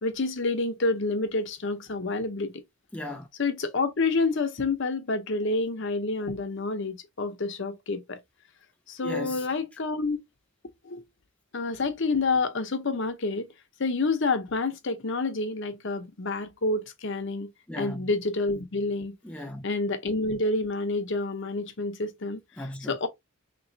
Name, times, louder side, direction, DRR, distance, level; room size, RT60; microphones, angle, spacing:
voice 1, 0.0-2.6 3.4-8.2 8.9-10.2 10.8-11.0 11.5-13.5 13.8-17.5 17.8-19.1 19.6-22.4 22.9-23.1, left 3 dB, 55° left, 0.7 m, -28 dB
voice 2, 2.9-3.3 9.0-9.5 17.7-18.1 19.2-19.6 22.6-23.0, left 1 dB, 5° left, 0.3 m, -36 dB
3.9 x 3.0 x 2.6 m
head